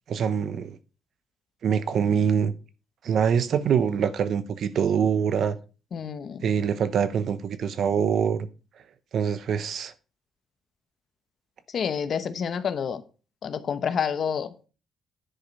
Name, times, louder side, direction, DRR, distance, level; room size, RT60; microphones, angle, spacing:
voice 1, 0.1-0.8 1.6-2.5 3.0-5.6 6.4-8.5 9.1-9.9, right 7 dB, 65° right, 0.9 m, -24 dB
voice 2, 5.9-6.5 11.7-13.0 13.4-14.5, left 7 dB, 55° left, 0.9 m, -28 dB
10.0 x 5.1 x 5.4 m
cardioid pair, 90°, 0 cm